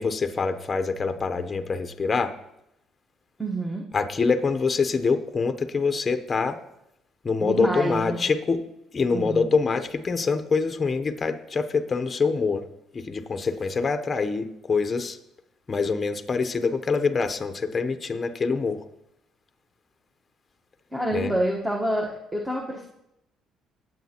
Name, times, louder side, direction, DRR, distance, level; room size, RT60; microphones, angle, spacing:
voice 1, 0.0-2.3 3.9-6.6 7.2-8.6 8.9-12.6 12.9-15.2 15.7-18.8 21.1-21.3, left 4 dB, 30° left, 8 dB, 0.7 m, -25 dB
voice 2, 3.4-3.8 7.4-8.2 9.1-9.6 20.9-22.9, right 1 dB, 10° right, -1 dB, 1.1 m, -27 dB
18.5 x 7.8 x 2.9 m, 0.83 s
cardioid pair, 105°, 0 cm